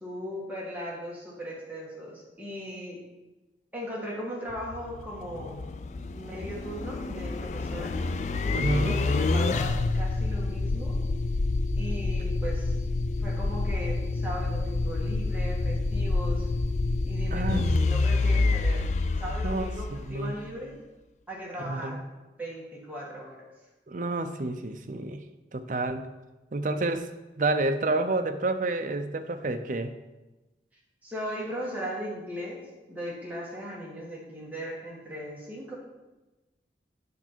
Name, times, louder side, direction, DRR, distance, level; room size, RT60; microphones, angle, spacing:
voice 1, 0.0-3.0 3.7-5.6 6.1-7.9 8.8-11.0 11.8-12.8 13.2-16.5 17.0-18.9 19.2-20.7 21.3-22.0 22.4-23.4 31.0-32.6 32.9-35.7, equal, 10° right, -5 dB, 1.7 m, -38 dB
sound 1, 4.5-20.5, left 3 dB, 40° left, 0.3 m, -28 dB
voice 2, 8.5-9.0 17.3-17.6 19.4-20.4 21.6-22.0 23.9-25.2 25.5-26.1 26.5-27.1 27.4-29.9, right 2 dB, 45° right, 8 dB, 0.5 m, -29 dB
8.5 x 5.5 x 4.4 m, 1.1 s
head